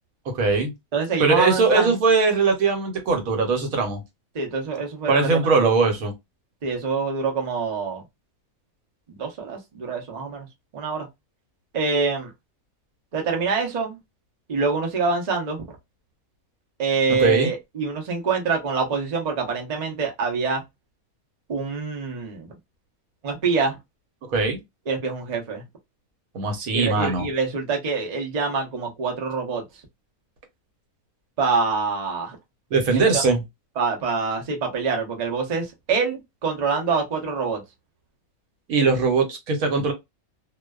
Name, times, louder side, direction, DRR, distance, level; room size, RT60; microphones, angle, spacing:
voice 1, 0.3-0.7 1.2-4.0 5.1-6.1 17.1-17.5 24.3-24.6 26.3-27.3 32.7-33.4 38.7-39.9, right 4 dB, 75° right, 1.2 m, -20 dB
voice 2, 0.9-1.9 4.3-5.7 6.6-8.0 9.1-10.5 10.7-11.1 11.7-12.3 13.1-14.0 14.5-15.8 16.8-20.6 21.5-22.5 23.2-23.8 24.9-25.6 26.7-29.6 31.4-32.4 32.9-33.2 33.8-37.6, right 4 dB, 40° right, 0.6 m, -25 dB
2.4 x 2.2 x 2.2 m
omnidirectional pair, 1.5 m